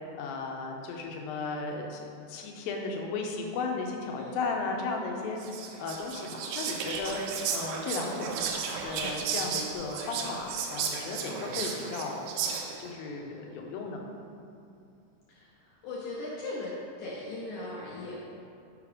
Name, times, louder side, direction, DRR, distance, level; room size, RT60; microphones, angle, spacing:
voice 1, 0.2-2.0 2.3-5.4 5.8-7.2 7.5-8.5 8.8-12.3 12.8-14.0, left 3 dB, 85° left, 1 dB, 2.5 m, -35 dB
Whispering, 5.4-12.9, right 6 dB, 80° right, 2.2 m, -34 dB
voice 2, 15.8-16.7 17.0-18.2, left 2 dB, 70° left, -6 dB, 2.0 m, -38 dB
5.7 x 4.8 x 4.9 m, 2.5 s
omnidirectional pair, 4.0 m